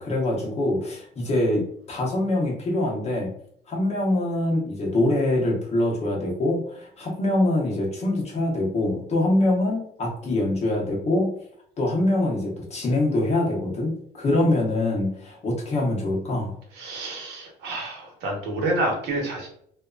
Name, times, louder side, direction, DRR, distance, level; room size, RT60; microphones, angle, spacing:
voice 1, 0.0-3.3 3.7-11.3 11.8-16.5, left 1 dB, 40° left, -2 dB, 1.0 m, -24 dB
voice 2, 16.8-19.5, right 1 dB, 85° right, -1 dB, 1.1 m, -28 dB
2.7 x 2.4 x 2.3 m, 0.65 s
cardioid pair, 110°, 17 cm